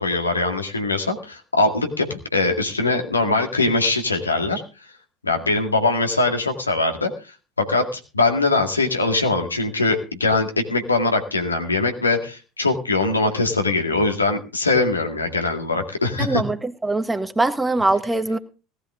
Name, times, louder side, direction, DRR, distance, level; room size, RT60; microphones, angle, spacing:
voice 1, 0.0-4.6 5.2-7.1 7.6-16.4, left 3 dB, 85° left, 4 dB, 2.1 m, -22 dB
voice 2, 16.2-18.4, right 2 dB, 10° right, 9 dB, 1.6 m, -22 dB
18.0 x 12.5 x 3.7 m, 0.33 s
figure-of-eight pair, 70°, 0 cm